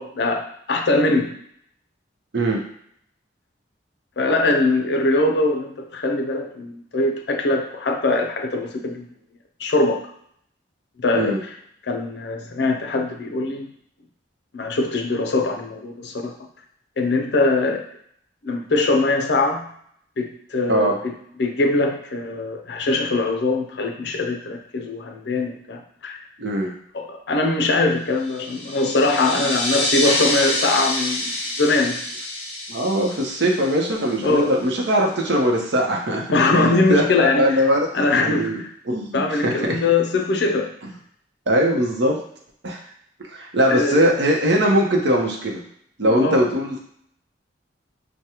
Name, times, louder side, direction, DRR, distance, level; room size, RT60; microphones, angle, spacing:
voice 1, 0.0-1.4 4.2-9.1 9.6-10.1 11.0-11.4 11.8-13.7 14.5-16.3 17.0-17.8 18.4-19.7 20.2-26.2 26.9-32.1 34.2-34.5 36.3-37.6 37.9-38.7 39.1-40.7 43.7-44.1 46.0-46.4, left 2 dB, 60° left, 3 dB, 0.5 m, -22 dB
voice 2, 26.4-26.7 29.4-29.5 32.7-39.8 40.8-40.9 41.5-42.2 42.6-42.8 43.2-45.6 46.0-46.8, equal, 65° right, 0 dB, 0.7 m, -21 dB
sound 1, 28.2-34.5, left 1 dB, 35° left, 0.8 m, -27 dB
4.8 x 2.2 x 2.9 m, 0.68 s
head